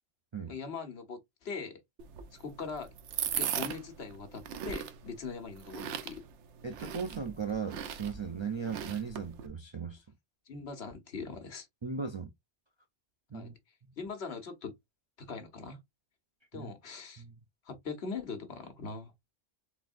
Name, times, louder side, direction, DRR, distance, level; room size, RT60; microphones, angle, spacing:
voice 1, 0.5-1.8 2.3-2.9 3.4-6.2 10.5-11.7 13.3-13.5 14.0-14.7 15.2-15.8 16.5-17.2 17.6-19.1, left 5 dB, 65° left, 1.3 m, -41 dB
sound 1, 2.0-9.5, right 8 dB, 90° right, 1.0 m, -39 dB
voice 2, 6.6-10.0 11.8-12.3 13.3-13.5 16.5-16.7 17.2-17.4, right 6 dB, 40° right, 0.4 m, -37 dB
3.9 x 3.6 x 2.4 m
omnidirectional pair, 1.1 m